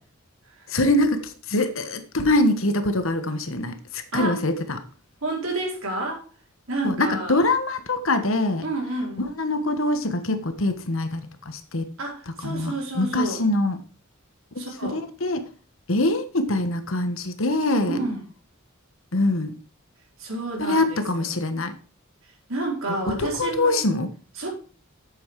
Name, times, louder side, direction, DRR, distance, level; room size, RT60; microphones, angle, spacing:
voice 1, 0.7-4.8 6.8-8.7 9.2-11.9 12.4-13.8 14.5-15.5 15.9-18.0 19.1-19.6 20.6-21.7 23.1-24.1, left 2 dB, 70° left, 9 dB, 1.4 m, -24 dB
voice 2, 5.2-6.2 6.7-7.4 8.6-9.3 12.0-13.4 14.6-15.0 17.9-18.2 20.2-21.3 22.5-23.8 24.4-24.5, right 2 dB, 70° right, -1 dB, 4.4 m, -29 dB
8.5 x 8.0 x 4.8 m, 0.39 s
head